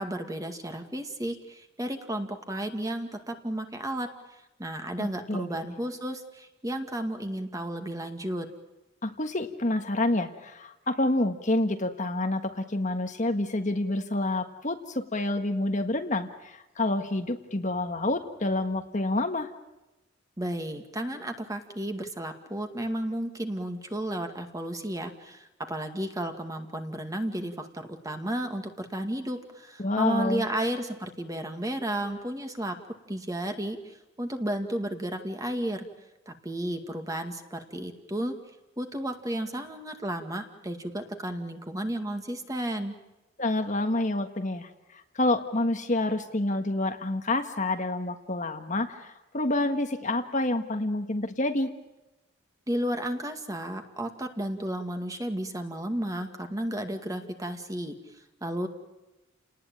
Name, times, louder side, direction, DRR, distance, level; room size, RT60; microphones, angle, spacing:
voice 1, 0.0-8.5 20.4-32.8 33.1-35.9 36.3-38.3 38.8-43.0 52.7-58.7, right 1 dB, 15° right, 5 dB, 2.1 m, -33 dB
voice 2, 5.0-5.7 9.0-19.5 29.8-30.5 43.4-51.7, left 2 dB, 35° left, 6 dB, 1.6 m, -28 dB
30.0 x 19.5 x 9.0 m, 1.0 s
head